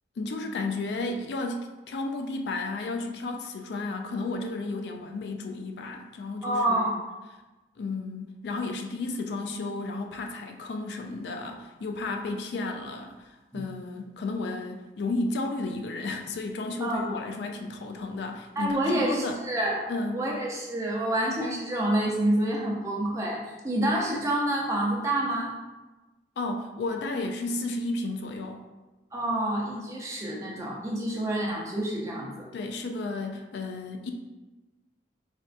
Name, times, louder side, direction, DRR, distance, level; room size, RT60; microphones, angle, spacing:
voice 1, 0.2-7.0 7.8-19.4 19.9-20.3 26.4-28.6 32.5-34.1, left 2 dB, 70° left, 4 dB, 0.3 m, -33 dB
voice 2, 6.4-7.0 13.5-13.6 16.8-17.2 18.6-19.9 20.1-25.5 29.1-32.5, right 1 dB, 15° right, -4 dB, 0.5 m, -28 dB
4.1 x 2.3 x 2.5 m, 1.1 s
head